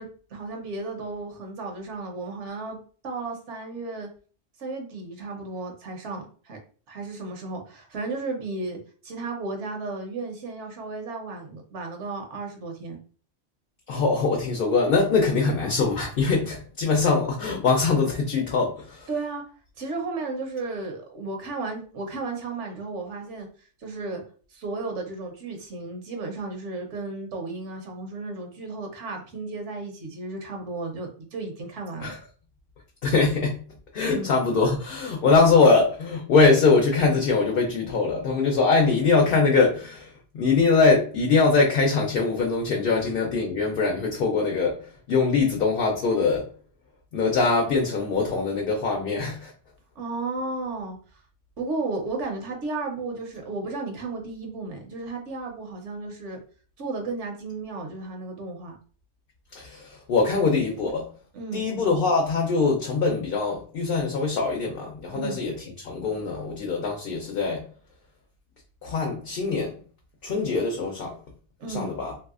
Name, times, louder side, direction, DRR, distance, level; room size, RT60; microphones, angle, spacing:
voice 1, 0.0-4.1 4.6-6.6 6.9-13.0 19.1-19.4 19.8-23.5 23.8-24.2 24.5-32.1 34.1-34.3 42.9-43.1 50.0-51.0 51.6-56.4 56.8-58.7 61.3-61.7 65.1-65.4 71.6-71.9, right 3 dB, 70° right, 1.0 m, -34 dB
voice 2, 13.9-19.1 32.0-32.2 33.0-33.6 33.9-44.8 45.1-46.4 47.1-49.5 59.5-61.0 61.5-67.6 68.8-69.8 70.2-71.1 71.7-72.1, left 4 dB, 60° left, 0.7 m, -22 dB
3.1 x 2.7 x 2.4 m
omnidirectional pair, 1.3 m